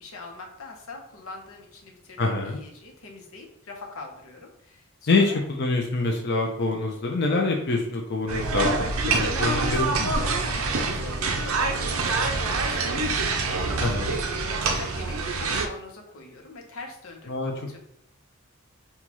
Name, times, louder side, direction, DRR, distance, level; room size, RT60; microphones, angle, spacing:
voice 1, 0.0-5.4 9.4-9.8 10.2-14.1 14.6-17.8, left 3 dB, 90° left, 1 dB, 0.9 m, -43 dB
voice 2, 2.2-2.6 5.1-10.1 13.8-14.2 17.3-17.5, left 3 dB, 55° left, 0 dB, 0.6 m, -25 dB
sound 1, 8.3-15.7, right 3 dB, 85° right, 0.6 m, -26 dB
5.6 x 2.3 x 3.0 m, 0.74 s
head